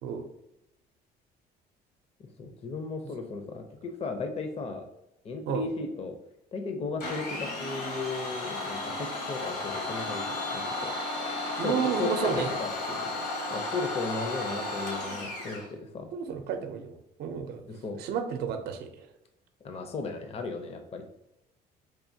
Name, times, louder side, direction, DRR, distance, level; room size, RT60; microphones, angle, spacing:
voice 1, 2.2-4.8 5.2-6.2 6.5-10.9 11.3-16.1 17.7-18.0 19.6-21.0, left 3 dB, 35° left, 5 dB, 0.5 m, -36 dB
Domestic sounds home sounds, 7.0-15.7, left 2 dB, 75° left, 1.3 m, -34 dB
voice 2, 11.6-12.5 16.1-17.6 18.0-19.1, right 7 dB, 75° right, 7 dB, 0.5 m, -32 dB
4.8 x 2.8 x 2.7 m, 0.85 s
cardioid pair, 110°, 17 cm